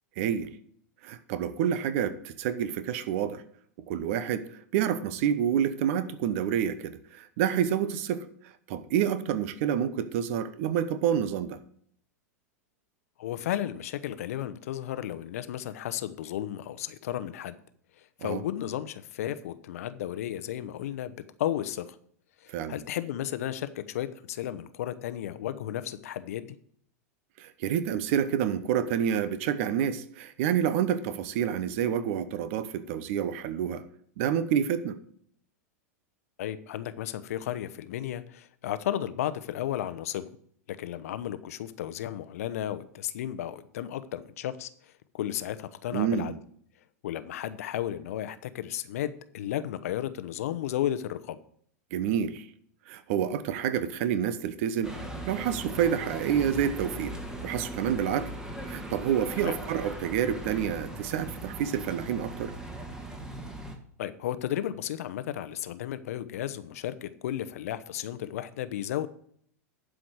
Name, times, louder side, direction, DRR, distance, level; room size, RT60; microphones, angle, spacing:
voice 1, 0.2-0.5 1.0-3.4 3.9-8.3 8.7-11.6 18.2-18.4 22.5-22.8 27.4-33.8 34.2-35.0 45.9-46.4 51.9-52.5 52.9-55.0 55.3-57.2 57.4-58.3 58.7-62.5, right 9 dB, 55° right, 13 dB, 0.9 m, -28 dB
voice 2, 13.2-17.6 18.0-21.1 21.4-22.0 22.4-26.6 36.4-40.3 40.7-46.3 47.0-51.4 59.4-59.6 64.0-69.1, left 11 dB, 65° left, 13 dB, 0.8 m, -34 dB
sound 1, 54.8-63.7, right 1 dB, 5° right, 1.6 m, -39 dB
11.5 x 5.1 x 6.2 m, 0.62 s
hypercardioid pair, 95°, 9 cm